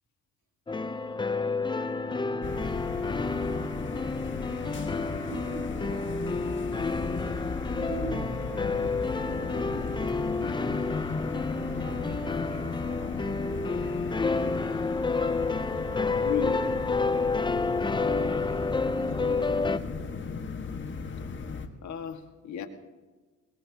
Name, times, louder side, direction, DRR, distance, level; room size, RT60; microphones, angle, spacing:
sound 1, 0.7-19.8, left 3 dB, 15° left, 0.7 m, -30 dB
sound 2, 2.4-21.7, left 4 dB, 40° left, 1.6 m, -36 dB
voice 1, 4.5-8.8 9.3-14.7 18.0-20.2, right 3 dB, 80° right, 0 dB, 3.6 m, -45 dB
voice 2, 16.2-16.7 21.8-22.7, left 7 dB, 70° left, 4 dB, 1.8 m, -34 dB
21.0 x 19.5 x 2.9 m, 1.3 s
cardioid pair, 90°, 30 cm